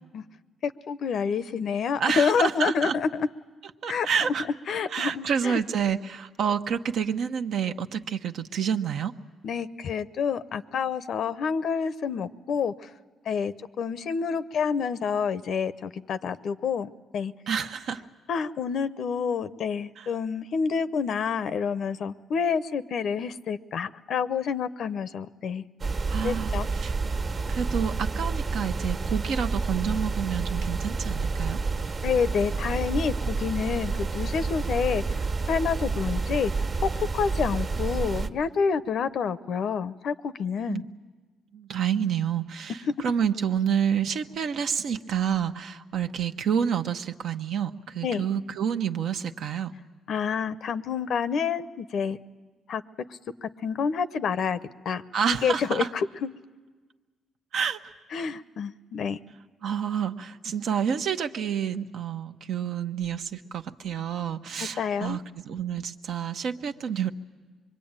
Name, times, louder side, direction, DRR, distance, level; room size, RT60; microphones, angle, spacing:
voice 1, 0.6-3.3 3.9-4.1 4.7-5.6 9.4-12.9 13.3-17.3 18.3-25.6 26.2-26.7 32.0-35.0 35.5-36.5 36.8-40.8 48.0-48.2 50.1-52.2 52.7-52.8 53.1-54.6 54.8-55.0 55.4-56.3 58.1-59.2 64.8-65.2, left 6 dB, 65° left, 14 dB, 0.7 m, -28 dB
voice 2, 2.0-2.9 3.8-4.5 4.9-9.1 17.5-18.0 20.0-20.1 26.1-26.9 27.5-31.6 40.7-40.8 41.5-49.7 55.1-55.9 57.5-57.9 59.6-67.1, right 7 dB, 70° right, 6 dB, 1.0 m, -28 dB
sound 1, 25.8-38.3, right 4 dB, 50° right, 1.5 m, -29 dB
25.0 x 23.0 x 8.9 m, 1.4 s
cardioid pair, 90°, 0 cm